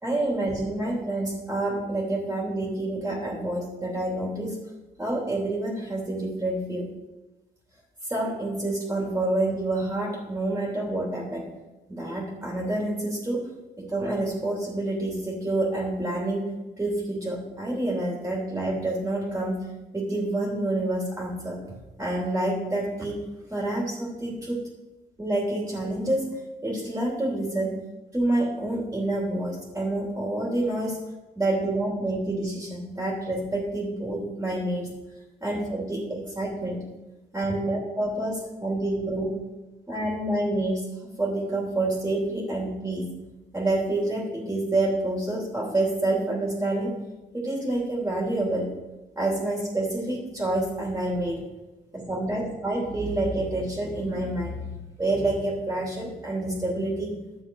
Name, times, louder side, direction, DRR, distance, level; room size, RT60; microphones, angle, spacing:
voice 1, 0.0-4.6 5.0-6.9 8.0-11.5 11.9-13.5 13.8-16.5 16.8-19.7 19.9-21.6 22.0-23.2 23.5-24.6 25.2-27.8 28.1-31.0 31.4-34.9 35.4-36.8 37.3-39.4 39.9-40.9 41.2-43.1 43.5-46.9 47.3-48.7 49.1-51.4 51.9-54.7 55.0-57.2, right 2 dB, 10° right, -2 dB, 3.2 m, -28 dB
12.0 x 7.3 x 4.8 m, 1.1 s
cardioid pair, 90°, 20 cm